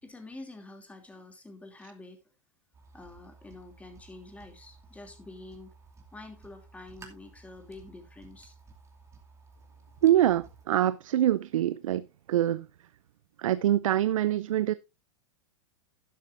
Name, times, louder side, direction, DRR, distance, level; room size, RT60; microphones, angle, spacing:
voice 1, 0.0-2.2 2.9-5.7 6.1-8.6, left 2 dB, 10° left, 2.8 m, -47 dB
sound 1, 2.7-10.6, right 4 dB, 15° right, 2.6 m, -55 dB
voice 2, 10.0-12.7 13.4-14.7, right 12 dB, 85° right, 0.5 m, -25 dB
12.0 x 11.0 x 2.6 m
hypercardioid pair, 125°, 17 cm